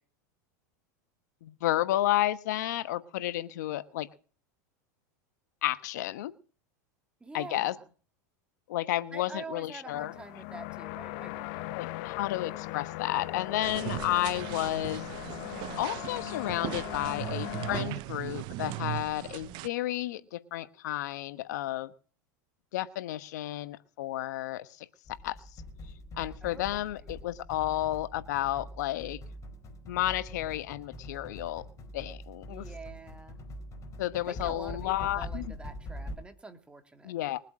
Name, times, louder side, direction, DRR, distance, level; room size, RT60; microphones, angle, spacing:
voice 1, 1.4-4.1 5.6-6.3 7.3-7.7 8.7-10.1 11.8-15.0 15.8-21.9 22.7-24.9 25.2-25.4 26.2-29.2 29.8-31.6 31.9-32.7 34.0-35.5 37.0-37.4, left 14 dB, 75° left, 13 dB, 1.2 m, -32 dB
voice 2, 7.2-7.8 9.1-11.8 26.4-27.2 32.5-33.4 34.2-37.1, right 2 dB, 10° right, 7 dB, 2.6 m, -46 dB
sound 1, 9.9-17.8, left 19 dB, 60° left, 0.8 m, -39 dB
sound 2, 13.6-19.7, right 18 dB, 50° right, 0.6 m, -38 dB
sound 3, 25.1-36.2, equal, 30° left, 4.7 m, -44 dB
22.5 x 8.2 x 6.2 m, 0.40 s
hypercardioid pair, 110°, 10 cm